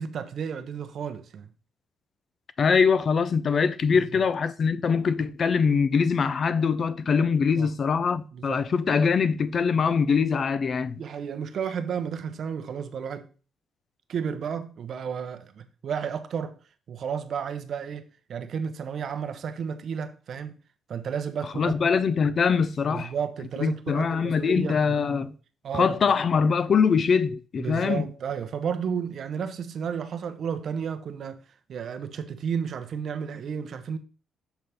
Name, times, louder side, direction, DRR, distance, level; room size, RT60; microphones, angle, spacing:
voice 1, 0.0-1.5 3.9-4.2 7.6-7.7 8.3-8.7 11.0-13.3 14.1-16.6 16.9-20.6 20.9-21.8 22.9-25.3 25.6-26.1 27.6-31.4 31.7-34.0, right 7 dB, 60° right, 0.7 m, -32 dB
voice 2, 2.6-11.0 21.6-23.1 23.6-25.3 25.7-28.1, left 5 dB, 50° left, 0.4 m, -23 dB
7.0 x 4.0 x 3.4 m
cardioid pair, 90°, 0 cm